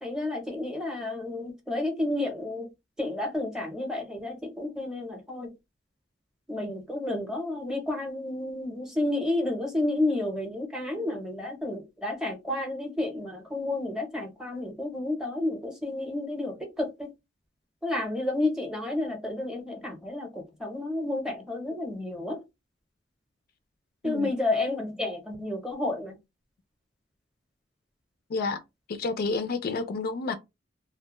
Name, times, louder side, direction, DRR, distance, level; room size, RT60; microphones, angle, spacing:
voice 1, 0.0-2.7 3.0-5.6 6.5-17.1 17.8-22.4 24.0-26.2, left 2 dB, 5° right, 0.7 m, -31 dB
voice 2, 28.3-28.6 28.9-30.3, left 3 dB, 55° left, 0.3 m, -29 dB
2.4 x 2.2 x 2.9 m
head